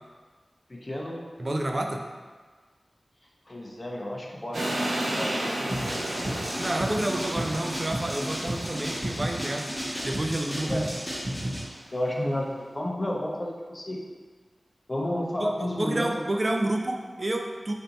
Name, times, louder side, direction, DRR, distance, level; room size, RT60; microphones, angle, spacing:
voice 1, 0.7-1.2 3.5-4.6 4.9-5.6 10.7-10.8 11.9-14.0 14.9-16.1, left 1 dB, 30° left, -1 dB, 0.6 m, -31 dB
voice 2, 1.4-2.1 6.6-9.7 10.0-11.0 15.4-17.7, right 1 dB, 40° right, 2 dB, 0.4 m, -29 dB
sound 1, 4.5-11.6, right 1 dB, 85° right, 0.6 m, -34 dB
sound 2, 5.7-11.6, equal, ahead, 1.1 m, -33 dB
3.4 x 2.7 x 4.0 m, 1.4 s
wide cardioid pair, 60°, 0 cm